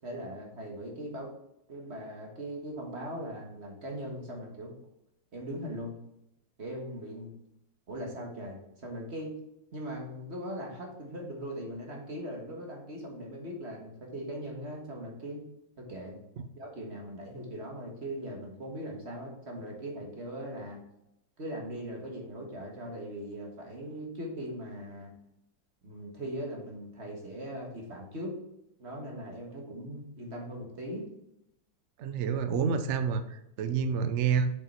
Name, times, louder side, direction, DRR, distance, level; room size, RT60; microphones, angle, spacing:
voice 1, 0.0-1.3 1.7-4.7 5.3-6.0 6.6-7.3 7.9-9.3 9.7-15.4 15.8-16.2 16.5-20.8 21.4-25.1 25.8-28.3 28.8-31.1, equal, 40° right, 0 dB, 1.7 m, -40 dB
voice 2, 32.0-34.5, right 6 dB, 80° right, 9 dB, 0.6 m, -28 dB
6.8 x 5.6 x 4.3 m, 0.82 s
omnidirectional pair, 1.9 m